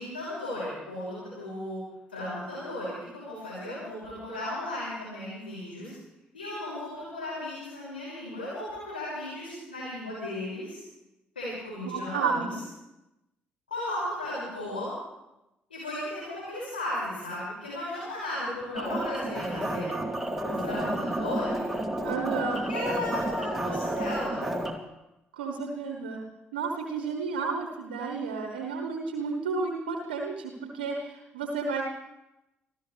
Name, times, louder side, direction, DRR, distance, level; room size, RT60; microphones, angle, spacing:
voice 1, 0.0-1.8 2.1-5.9 6.3-10.8 11.3-12.5 13.7-14.9 15.7-20.0 20.4-21.7 22.7-24.5, left 1 dB, 85° left, -8 dB, 6.0 m, -35 dB
voice 2, 11.8-12.5 22.0-22.7 25.4-26.2 26.5-31.8, right 4 dB, 75° right, 2 dB, 1.2 m, -32 dB
sound 1, 18.8-24.7, right 1 dB, 5° right, 2.6 m, -31 dB
26.5 x 14.5 x 3.4 m, 0.94 s
figure-of-eight pair, 45°, 5 cm